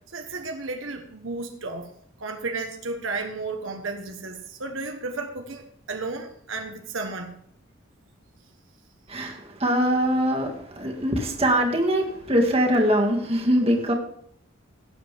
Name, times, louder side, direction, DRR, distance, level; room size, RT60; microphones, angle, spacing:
voice 1, 0.1-1.9 2.2-7.4, right 3 dB, 75° right, 4 dB, 1.1 m, -33 dB
voice 2, 9.1-13.9, equal, 30° right, 0 dB, 2.0 m, -22 dB
18.0 x 7.9 x 3.5 m, 0.67 s
head